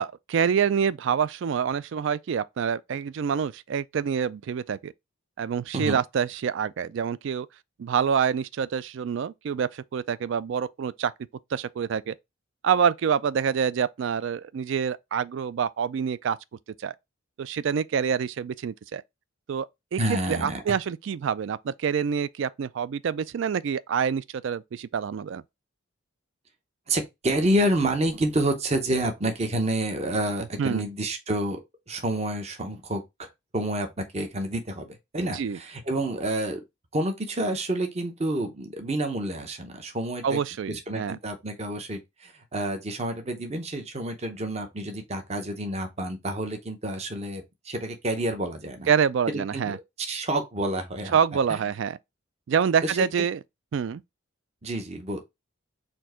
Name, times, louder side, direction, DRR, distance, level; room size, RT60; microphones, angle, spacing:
voice 1, 0.0-4.9 5.4-7.5 7.8-11.1 11.5-12.1 12.6-16.4 16.8-16.9 17.4-19.0 19.5-19.7 19.9-20.0 20.3-25.4 30.6-30.8 35.3-35.6 40.2-41.2 48.9-49.8 51.1-52.0 52.5-53.4 53.7-54.0, right 7 dB, 60° right, 0.3 m, -26 dB
voice 2, 20.0-20.8 26.9-31.6 31.9-33.3 33.5-36.6 36.9-40.4 40.7-48.9 49.3-51.2 51.5-51.6 52.8-53.0 54.6-55.2, right 1 dB, 30° right, 0.8 m, -29 dB
4.4 x 2.6 x 4.3 m
head